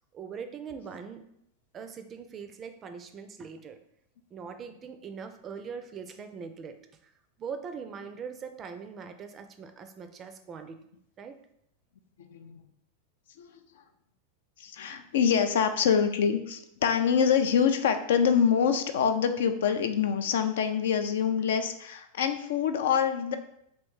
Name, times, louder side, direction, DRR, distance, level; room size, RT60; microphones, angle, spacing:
voice 1, 0.1-1.2 1.7-3.8 4.3-6.8 7.0-7.1 7.4-10.8 11.2-11.4, right 6 dB, 25° right, 8 dB, 0.4 m, -41 dB
voice 2, 12.2-12.6 13.4-13.8 14.6-23.4, left 7 dB, 60° left, 8 dB, 0.3 m, -25 dB
3.1 x 3.0 x 4.5 m, 0.75 s
figure-of-eight pair, 90°, 0 cm